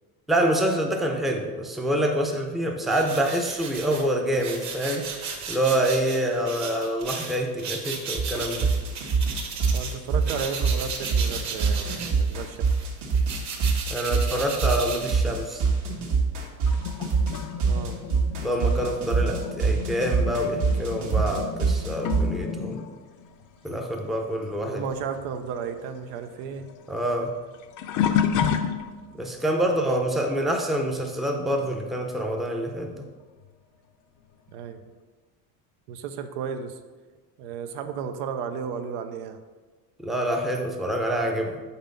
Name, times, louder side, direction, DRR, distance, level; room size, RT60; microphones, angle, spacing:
voice 1, 0.3-5.1 5.5-8.7 13.9-15.6 18.4-22.8 23.6-24.8 26.9-27.4 29.2-33.1 40.0-41.6, right 1 dB, ahead, 2 dB, 0.5 m, -26 dB
sound 1, 2.9-10.0 10.2-15.7, right 5 dB, 40° right, 1.1 m, -35 dB
sound 2, 8.2-22.3, right 5 dB, 65° right, 1.6 m, -24 dB
voice 2, 9.7-12.7 17.6-18.0 24.6-26.7 29.6-29.7 34.5-34.8 35.9-36.8 37.4-39.4, right 6 dB, 85° right, 8 dB, 0.7 m, -34 dB
sound 3, 16.7-24.7 24.9-29.2 29.9-30.2 32.4-32.5 33.4-33.5, left 8 dB, 45° left, 0.5 m, -31 dB
5.7 x 4.4 x 5.2 m, 1.3 s
cardioid pair, 135°, 44 cm